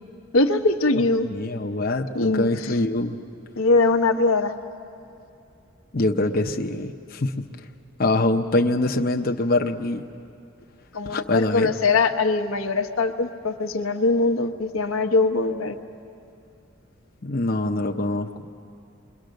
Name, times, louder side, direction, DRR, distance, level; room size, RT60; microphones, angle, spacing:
voice 1, 0.3-1.3 2.1-2.7 3.6-4.5 10.9-15.7, left 3 dB, 90° left, 4 dB, 1.1 m, -22 dB
voice 2, 1.2-3.2 5.9-7.3 8.0-10.0 11.1-11.7 17.2-18.3, left 2 dB, 45° left, 2 dB, 0.8 m, -24 dB
29.0 x 22.5 x 6.5 m, 2.6 s
head